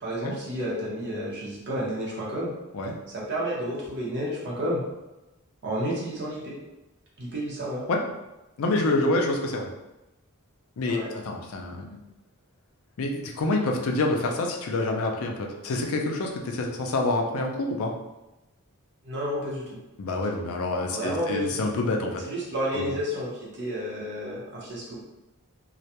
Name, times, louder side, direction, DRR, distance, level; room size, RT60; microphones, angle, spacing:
voice 1, 0.0-2.5 3.1-4.8 5.6-6.5 7.2-7.8 10.9-11.1 19.0-19.8 20.9-21.7 22.2-25.0, equal, 50° right, -5 dB, 0.7 m, -31 dB
voice 2, 8.6-9.7 10.8-12.0 13.0-17.9 20.0-22.2 22.7-22.9, left 2 dB, 70° left, 2 dB, 0.4 m, -27 dB
2.3 x 2.1 x 2.8 m, 0.99 s
head